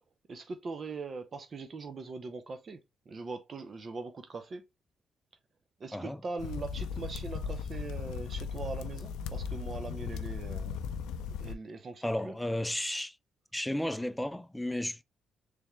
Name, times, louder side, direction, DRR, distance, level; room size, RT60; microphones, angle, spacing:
voice 1, 0.3-2.8 3.1-4.6 5.8-10.8 11.2-12.3, right 4 dB, 40° right, 0.6 m, -41 dB
sound 1, 6.4-11.5, left 6 dB, 90° left, 0.4 m, -37 dB
voice 2, 12.0-13.1 13.5-15.0, left 1 dB, 5° left, 0.4 m, -33 dB
3.5 x 3.4 x 3.0 m
cardioid pair, 90°, 0 cm